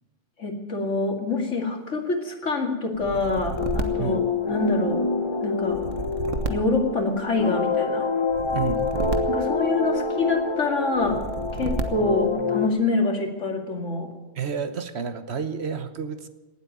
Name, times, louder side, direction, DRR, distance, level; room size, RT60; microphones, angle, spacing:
voice 1, 0.4-5.0 5.4-5.8 6.5-8.1 9.2-11.2 11.5-14.1, left 3 dB, 75° left, 3 dB, 2.7 m, -26 dB
sound 1, 3.0-4.9 5.6-7.6 8.3-10.2 11.0-12.3, right 3 dB, 90° right, 1.6 m, -32 dB
sound 2, 3.6-12.7, left 4 dB, 25° left, 1.1 m, -27 dB
voice 2, 8.5-8.9 14.4-16.3, right 6 dB, 60° right, 11 dB, 1.3 m, -30 dB
18.5 x 8.4 x 9.2 m, 1.1 s
omnidirectional pair, 1.3 m